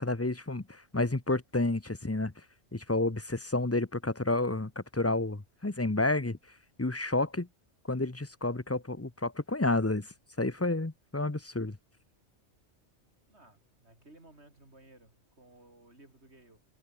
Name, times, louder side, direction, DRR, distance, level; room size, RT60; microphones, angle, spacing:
voice 1, 0.0-2.3 2.7-6.4 6.8-7.5 7.9-11.8, left 2 dB, 15° left, 0.9 m, -30 dB
voice 2, 13.3-16.6, right 2 dB, 70° right, 6.1 m, -58 dB
omnidirectional pair, 1.2 m